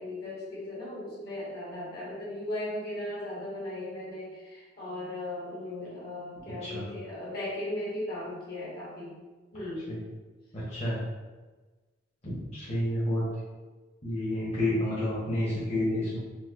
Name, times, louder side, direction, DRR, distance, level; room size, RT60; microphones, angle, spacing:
voice 1, 0.0-9.2 9.5-9.9, left 1 dB, 55° left, -7 dB, 1.3 m, -37 dB
voice 2, 10.5-11.0 12.2-13.2 14.0-16.2, left 1 dB, 35° left, -10 dB, 1.0 m, -30 dB
4.2 x 2.6 x 2.5 m, 1.3 s
head